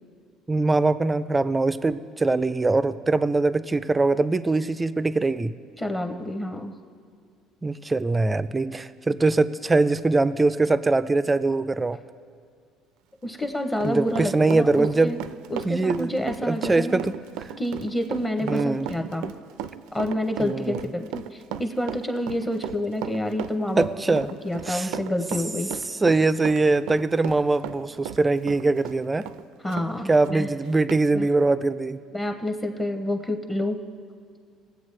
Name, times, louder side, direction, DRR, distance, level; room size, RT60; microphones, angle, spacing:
voice 1, 0.5-5.5 7.6-12.0 13.8-15.2 15.6-17.1 18.4-18.9 20.4-20.8 23.8-24.3 24.7-25.0 25.9-29.3 30.1-32.0, right 3 dB, 15° right, 13 dB, 0.3 m, -22 dB
voice 2, 5.8-6.7 13.2-15.2 15.5-17.0 17.6-19.3 19.9-23.9 24.4-25.7 29.6-30.5 31.1-31.3 32.1-33.8, left 1 dB, 15° left, 6 dB, 0.7 m, -28 dB
Run, 13.2-29.9 30.2-30.4 30.9-31.0, right 9 dB, 85° right, 0.4 m, -36 dB
21.0 x 8.0 x 3.2 m, 2.1 s
cardioid pair, 145°, 0 cm